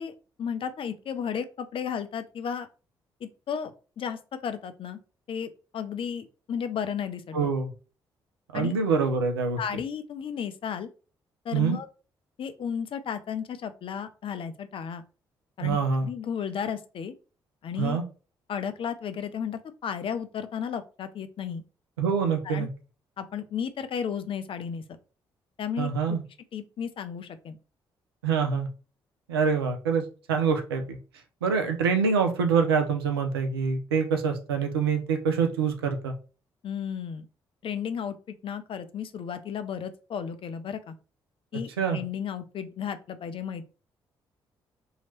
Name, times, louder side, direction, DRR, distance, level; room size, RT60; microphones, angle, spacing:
voice 1, 0.0-2.7 3.2-5.0 5.3-7.5 8.5-8.7 9.6-10.9 11.4-11.9 12.4-15.0 15.6-17.1 17.6-18.0 18.5-21.6 22.4-22.7 23.2-25.0 25.6-26.2 26.5-27.6 36.6-37.3 37.6-40.9 41.5-43.6, left 7 dB, 45° left, 10 dB, 0.5 m, -34 dB
voice 2, 7.3-7.7 8.5-9.6 11.5-11.8 15.6-16.1 17.8-18.0 22.0-22.7 25.8-26.2 28.2-28.7 29.3-31.0 31.4-36.1 41.8-42.0, right 5 dB, 80° right, 5 dB, 0.5 m, -25 dB
2.9 x 2.8 x 4.2 m, 0.35 s
figure-of-eight pair, 40°, 12 cm